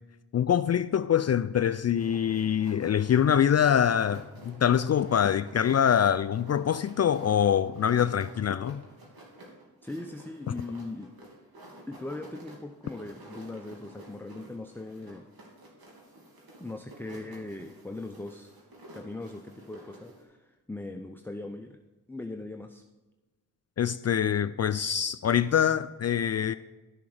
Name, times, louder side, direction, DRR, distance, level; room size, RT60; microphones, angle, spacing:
voice 1, 0.3-8.8 23.8-26.6, left 9 dB, 40° left, 0.4 m, -24 dB
sound 1, 1.9-20.2, right 1 dB, 65° right, 3.0 m, -51 dB
voice 2, 9.8-11.1 11.9-15.3 16.6-18.5 18.9-21.8 22.1-22.8, left 2 dB, 5° left, 0.7 m, -40 dB
12.0 x 6.9 x 4.9 m
supercardioid pair, 45°, 39 cm